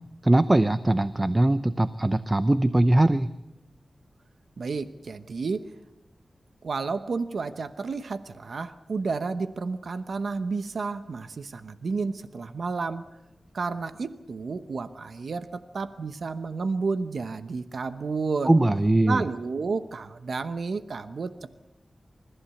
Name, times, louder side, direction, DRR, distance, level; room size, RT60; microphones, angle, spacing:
voice 1, 0.2-3.3 18.4-19.3, right 1 dB, 25° right, 13 dB, 0.7 m, -21 dB
voice 2, 4.6-5.7 6.6-13.0 13.5-18.5 19.0-21.5, right 4 dB, 75° right, 11 dB, 0.9 m, -31 dB
26.5 x 15.0 x 8.4 m, 0.97 s
wide cardioid pair, 75°, 0 cm